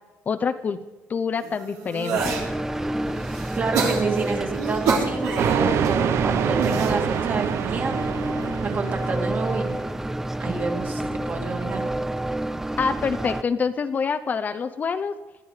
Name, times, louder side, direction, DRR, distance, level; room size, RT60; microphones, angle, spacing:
voice 1, 0.3-0.8 1.1-2.4 12.8-15.2, left 5 dB, 30° left, 8 dB, 0.7 m, -26 dB
sound 1, 1.4-2.5 3.0-5.9 6.4-6.9 7.7-8.1, right 5 dB, 75° right, 3.5 m, -28 dB
sound 2, 2.2-13.4, right 1 dB, 10° right, 0.5 m, -29 dB
voice 2, 3.5-8.0 8.6-9.8 10.4-11.8, right 4 dB, 35° right, 3 dB, 2.4 m, -28 dB
sound 3, 5.4-9.9, right 9 dB, 55° right, 0.7 m, -26 dB
20.5 x 12.0 x 4.9 m, 1.1 s
cardioid pair, 130°, 5 cm